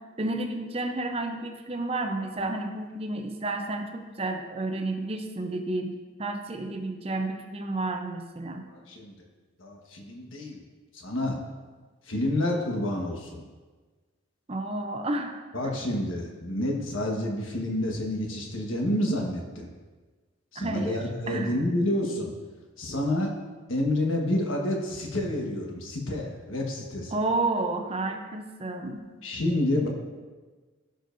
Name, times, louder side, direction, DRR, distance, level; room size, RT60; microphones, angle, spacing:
voice 1, 0.0-8.7 14.5-15.4 15.6-15.8 20.6-21.0 21.3-21.6 27.1-29.1, right 2 dB, 30° right, 5 dB, 0.6 m, -31 dB
voice 2, 9.6-10.6 11.0-11.4 12.1-13.4 15.5-19.7 20.5-22.3 22.8-23.3 23.7-27.2 29.2-29.9, left 1 dB, 75° left, 0 dB, 1.4 m, -28 dB
14.5 x 5.2 x 2.6 m, 1.3 s
head